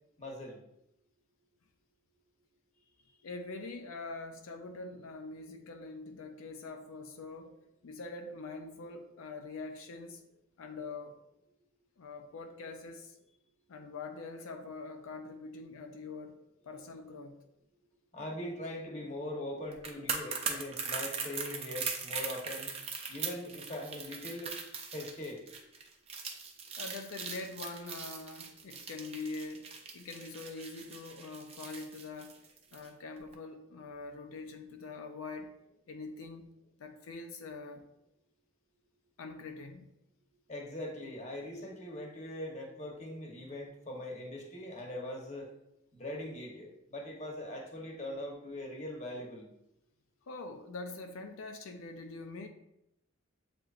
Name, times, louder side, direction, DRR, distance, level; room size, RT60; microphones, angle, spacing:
voice 1, 0.2-0.6 18.1-22.7 23.1-24.5 24.9-25.4 40.5-45.5 45.9-49.5, left 1 dB, 35° left, -1 dB, 0.9 m, -41 dB
voice 2, 3.2-7.5 7.8-10.2 10.6-11.2 12.0-13.2 13.7-16.4 16.6-17.4 26.8-32.3 32.7-35.5 35.9-36.5 36.8-37.8 39.2-39.9 50.3-52.5, left 3 dB, 90° left, 5 dB, 0.5 m, -44 dB
sound 1, 19.7-32.9 33.2-33.3, right 5 dB, 30° right, 0.5 m, -40 dB
7.6 x 2.9 x 2.4 m, 0.83 s
head